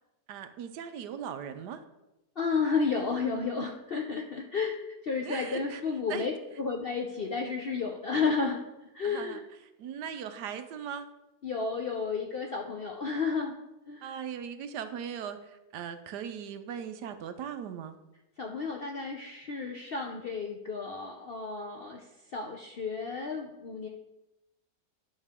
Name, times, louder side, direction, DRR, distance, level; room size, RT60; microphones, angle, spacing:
voice 1, 0.3-1.8 5.2-5.8 6.1-6.3 9.0-9.4 9.8-11.1 14.0-18.0, right 8 dB, 75° right, 9 dB, 1.2 m, -39 dB
voice 2, 2.4-4.7 5.0-8.6 8.9-9.4 11.4-13.5 13.9-14.1 18.4-22.0 22.3-23.9, left 5 dB, 85° left, 1 dB, 0.5 m, -32 dB
11.0 x 5.5 x 3.6 m, 0.96 s
omnidirectional pair, 1.9 m